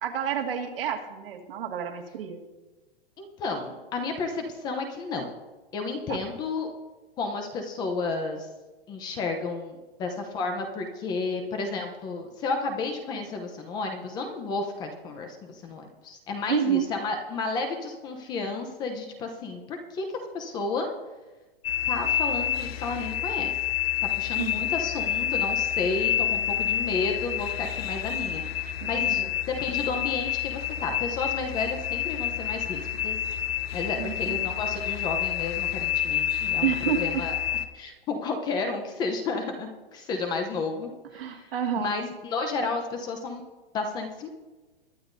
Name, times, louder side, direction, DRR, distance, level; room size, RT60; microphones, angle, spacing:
voice 1, 0.0-2.4 6.1-6.2 16.5-16.8 24.4-24.7 28.8-29.3 34.0-34.4 36.6-37.2 41.1-41.9, right 9 dB, 70° right, 4 dB, 2.0 m, -29 dB
voice 2, 3.2-5.3 5.7-6.7 7.2-8.5 8.9-20.9 21.9-23.5 24.0-33.2 33.7-36.7 37.0-37.4 37.7-43.4 43.7-44.3, left 3 dB, 15° left, 5 dB, 0.7 m, -32 dB
sound 1, 21.6-37.7, left 11 dB, 85° left, 1.0 m, -28 dB
22.0 x 10.0 x 2.6 m, 1.2 s
supercardioid pair, 170°, 30 cm